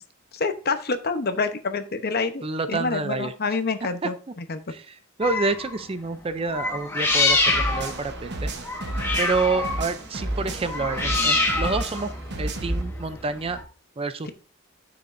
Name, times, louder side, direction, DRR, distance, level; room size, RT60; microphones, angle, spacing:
voice 1, 0.3-2.4 2.7-4.6, left 4 dB, 50° left, 9 dB, 0.9 m, -27 dB
voice 2, 2.4-3.3 4.0-4.1 4.7-8.5 9.2-12.1 12.4-13.6 14.0-14.3, right 3 dB, 25° right, 12 dB, 0.5 m, -28 dB
sound 1, 5.2-5.8 6.5-13.6, left 3 dB, 10° left, 1.4 m, -26 dB
sound 2, 7.5-12.8, right 1 dB, 55° right, 1.1 m, -31 dB
9.4 x 6.9 x 2.6 m, 0.37 s
head